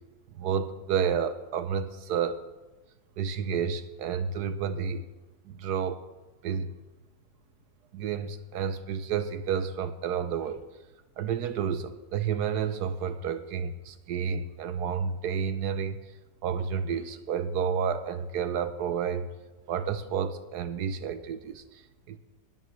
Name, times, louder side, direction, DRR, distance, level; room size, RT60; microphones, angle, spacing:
voice 1, 0.3-2.4 3.2-5.0 5.5-6.0 6.4-6.7 7.9-10.6 11.2-16.0 16.4-19.3 19.7-21.8 22.1-22.2, right 7 dB, 70° right, 12 dB, 1.2 m, -30 dB
20.0 x 13.0 x 3.2 m, 1.2 s
omnidirectional pair, 1.9 m